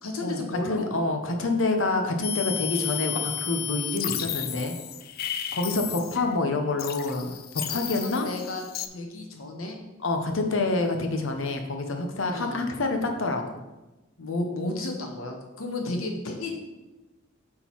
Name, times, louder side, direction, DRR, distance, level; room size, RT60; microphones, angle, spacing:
voice 1, 0.0-0.9 7.7-8.6 8.9-9.8 12.2-12.6 14.2-16.6, left 2 dB, 85° left, 2 dB, 1.2 m, -33 dB
voice 2, 0.7-4.7 5.5-7.3 7.7-8.3 10.0-13.6, left 2 dB, 65° left, 4 dB, 0.9 m, -27 dB
sound 1, 2.2-6.4 6.8-8.9, left 11 dB, 45° left, 0.4 m, -33 dB
8.3 x 3.9 x 4.6 m, 1.1 s
head